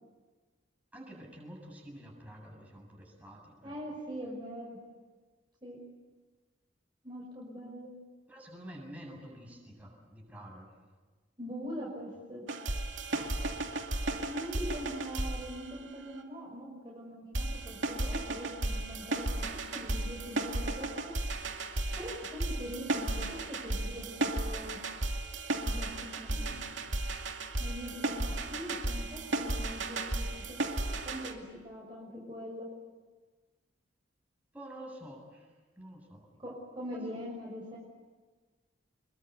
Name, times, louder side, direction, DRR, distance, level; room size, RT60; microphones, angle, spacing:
voice 1, 0.9-3.8 8.3-10.8 13.1-13.6 25.9-26.9 34.5-36.3 36.9-37.2, right 1 dB, 10° right, -1 dB, 7.5 m, -49 dB
voice 2, 3.6-4.8 5.6-5.8 7.0-7.9 11.4-12.4 14.2-21.1 22.0-24.8 25.6-26.6 27.6-32.7 36.4-37.8, equal, 25° right, -3 dB, 5.7 m, -42 dB
sound 1, 12.5-16.2 17.3-31.3, right 2 dB, 75° right, 2.5 m, -34 dB
28.0 x 22.5 x 8.2 m, 1.3 s
head